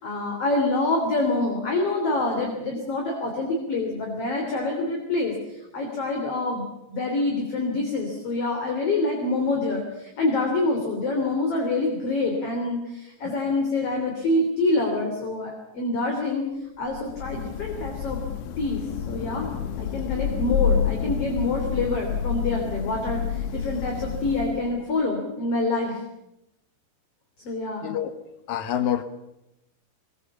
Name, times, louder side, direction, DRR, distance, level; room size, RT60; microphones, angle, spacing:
voice 1, 0.0-16.5 16.8-18.2 18.6-19.5 19.8-26.0 27.5-27.9, left 2 dB, 35° left, 2 dB, 3.9 m, -26 dB
Thunder / Rain, 16.9-24.9, left 8 dB, 90° left, 3.4 m, -29 dB
voice 2, 27.8-28.2 28.5-29.0, left 10 dB, 65° left, 10 dB, 2.0 m, -26 dB
23.5 x 21.5 x 7.2 m, 0.89 s
omnidirectional pair, 4.9 m